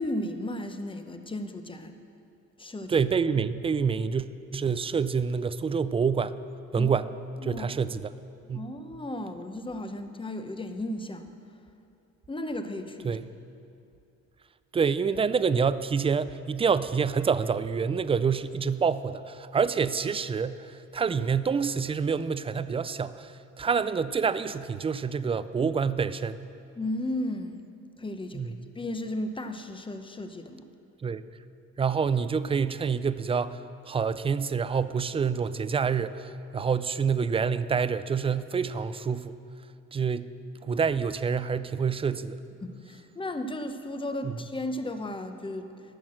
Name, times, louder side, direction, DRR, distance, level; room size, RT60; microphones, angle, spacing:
voice 1, 0.0-1.9 2.6-3.0 6.7-6.9 7.4-7.7 8.5-11.3 12.3-13.2 26.8-27.6 28.0-30.6 42.6-45.7, left 1 dB, 15° left, 7 dB, 0.8 m, -34 dB
voice 2, 2.9-6.4 6.7-7.1 7.4-8.1 8.5-8.7 13.0-13.3 14.7-26.5 28.3-28.7 31.0-31.2 31.8-39.4 39.9-40.3 40.6-42.4 44.2-44.4, right 6 dB, 20° right, 14 dB, 0.3 m, -27 dB
12.5 x 6.1 x 7.5 m, 2.6 s
cardioid pair, 90°, 30 cm